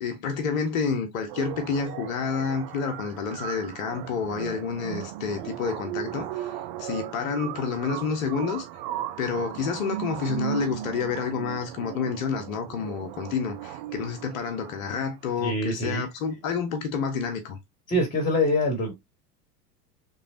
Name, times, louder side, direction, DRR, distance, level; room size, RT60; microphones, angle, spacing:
voice 1, 0.0-8.6 9.2-17.6, left 5 dB, 55° left, 1.0 m, -29 dB
sound 1, 1.3-15.3, right 12 dB, 35° right, 0.4 m, -37 dB
voice 2, 15.4-16.0 17.9-18.9, left 1 dB, 15° left, 1.4 m, -24 dB
3.7 x 3.1 x 2.7 m
figure-of-eight pair, 80°, 48 cm